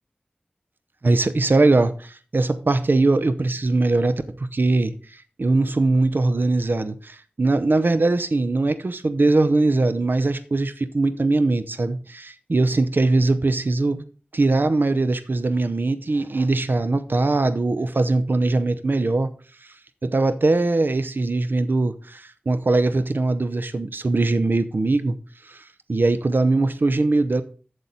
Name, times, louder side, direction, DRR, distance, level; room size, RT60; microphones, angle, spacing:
voice 1, 1.0-5.0 5.4-14.0 14.3-19.3 20.0-25.2 25.5-25.6 25.9-27.4, right 2 dB, 70° right, 0.7 m, -21 dB
7.7 x 6.9 x 4.3 m
wide cardioid pair, 60°, 4 cm